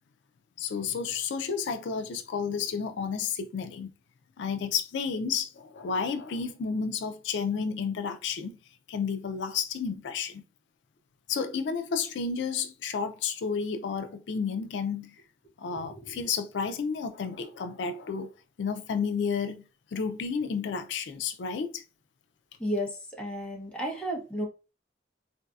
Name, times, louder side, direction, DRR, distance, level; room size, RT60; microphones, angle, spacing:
voice 1, 0.6-3.9 4.4-8.6 8.9-10.4 11.3-15.2 15.6-18.3 18.6-19.6 19.9-21.8, left 6 dB, 75° left, 0.4 m, -31 dB
voice 2, 22.6-24.5, equal, 5° left, 0.9 m, -33 dB
3.9 x 2.6 x 2.3 m
head